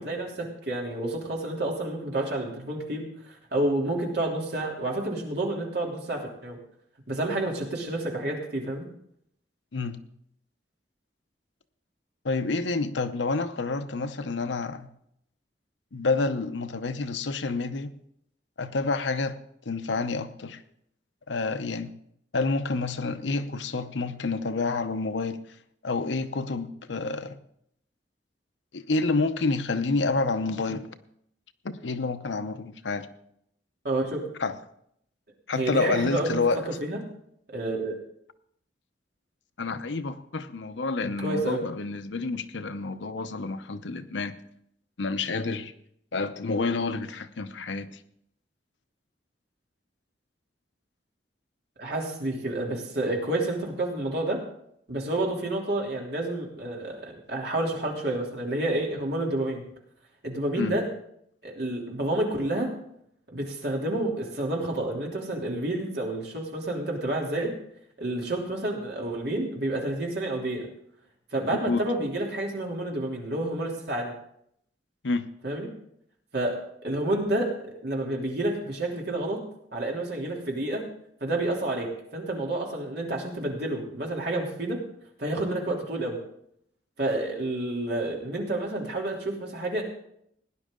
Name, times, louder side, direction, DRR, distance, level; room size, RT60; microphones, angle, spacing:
voice 1, 0.0-6.6 7.1-8.8 33.8-34.3 35.5-36.4 36.8-37.0 37.5-37.9 41.0-41.6 51.8-54.4 54.9-59.6 60.2-60.8 61.4-62.7 63.3-67.5 68.0-70.7 71.3-74.1 75.4-75.7 76.3-76.6 76.8-79.4 79.7-80.8 81.2-84.8 85.2-86.2 87.0-89.8, right 1 dB, 60° right, 3.1 m, -29 dB
voice 2, 12.2-14.9 15.9-17.9 18.6-19.4 19.7-20.6 21.3-21.9 22.3-25.4 25.8-27.4 28.7-30.9 31.6-33.1 34.4-34.5 35.5-36.6 39.6-44.3 45.0-45.7 46.1-48.0 60.6-60.8 71.7-71.8 75.0-75.2, left 3 dB, 80° left, 0.8 m, -28 dB
18.0 x 10.5 x 3.8 m
head